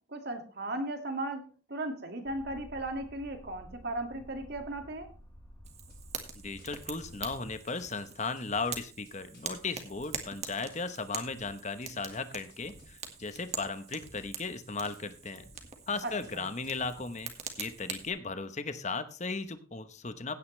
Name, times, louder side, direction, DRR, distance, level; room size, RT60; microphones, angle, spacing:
voice 1, 0.1-5.1 16.0-16.5, right 1 dB, 50° right, 5 dB, 2.1 m, -37 dB
sound 1, 2.3-7.6, equal, 15° left, 3.6 m, -52 dB
Fire, 5.6-18.1, right 6 dB, 30° right, 1.8 m, -44 dB
sound 2, 5.9-16.9, left 2 dB, 50° left, 6.6 m, -60 dB
voice 2, 6.4-15.5 15.9-17.3 17.6-20.4, left 4 dB, 35° left, 11 dB, 1.0 m, -36 dB
16.5 x 9.5 x 3.3 m, 0.36 s
head